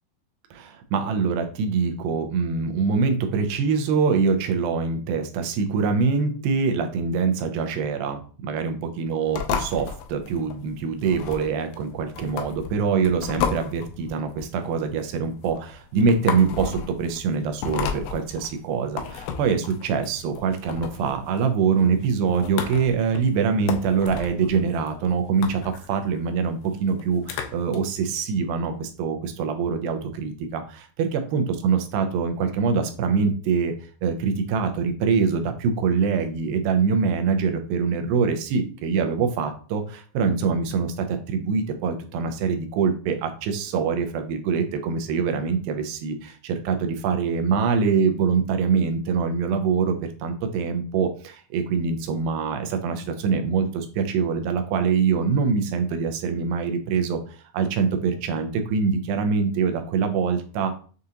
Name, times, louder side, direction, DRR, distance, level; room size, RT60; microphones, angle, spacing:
voice 1, 0.5-33.7 34.0-60.8, right 5 dB, 80° right, 6 dB, 2.4 m, -24 dB
sound 1, 9.3-27.8, left 7 dB, 90° left, 2.5 m, -34 dB
6.7 x 2.5 x 2.8 m, 0.41 s
omnidirectional pair, 4.2 m